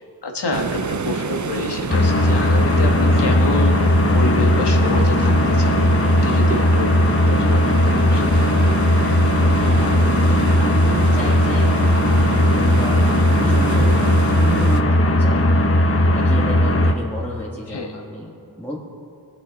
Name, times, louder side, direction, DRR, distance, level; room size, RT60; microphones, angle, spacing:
voice 1, 0.2-5.8 6.2-6.9 7.2-8.2 17.7-17.9, left 3 dB, 75° left, 1 dB, 1.7 m, -28 dB
sound 1, 0.5-14.8, right 5 dB, 45° right, 0.7 m, -29 dB
sound 2, 1.9-16.9, left 1 dB, 35° left, 1.0 m, -17 dB
voice 2, 2.9-3.4 9.5-15.9 16.1-18.8, equal, 5° left, -6 dB, 1.6 m, -32 dB
22.0 x 8.4 x 4.1 m, 2.5 s
wide cardioid pair, 65°, 41 cm